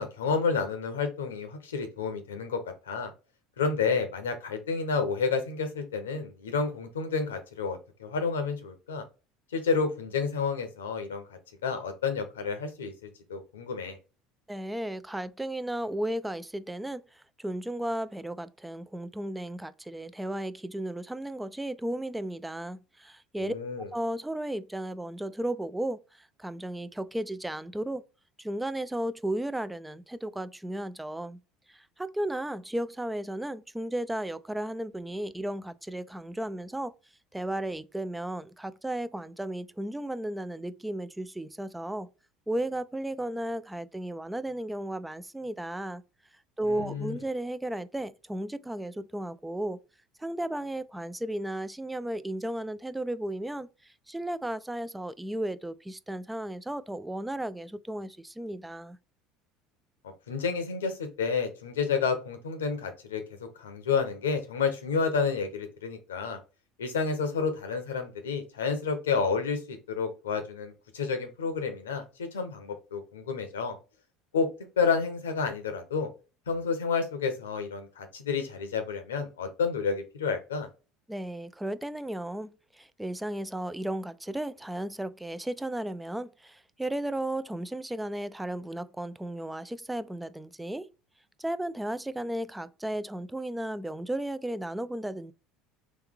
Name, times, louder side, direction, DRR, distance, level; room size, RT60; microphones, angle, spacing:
voice 1, 0.0-2.6 2.9-3.1 3.6-9.0 9.5-12.9 13.3-14.0 23.4-23.9 46.7-47.2 60.3-63.2 63.6-66.4 66.8-73.8 74.3-74.5 74.8-76.1 76.5-80.7, left 5 dB, 90° left, 0.8 m, -30 dB
voice 2, 14.5-23.5 23.9-28.0 28.4-31.4 31.7-36.9 37.3-42.1 42.5-46.0 46.6-49.8 50.2-59.0 81.1-90.9 91.4-95.3, right 1 dB, 10° right, 0.4 m, -34 dB
3.4 x 3.2 x 3.5 m
hypercardioid pair, 75°, 0 cm